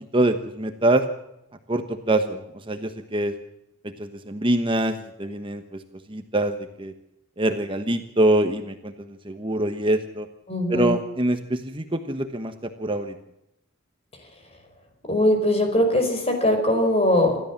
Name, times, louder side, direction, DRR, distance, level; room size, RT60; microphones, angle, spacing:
voice 1, 0.1-1.0 1.7-3.3 4.0-5.8 6.1-6.9 7.4-8.9 9.2-10.3 10.7-13.1, right 1 dB, 25° right, 7 dB, 1.2 m, -24 dB
voice 2, 10.5-10.9 15.1-17.4, left 1 dB, 30° left, 5 dB, 4.9 m, -21 dB
27.5 x 13.5 x 7.3 m, 0.85 s
head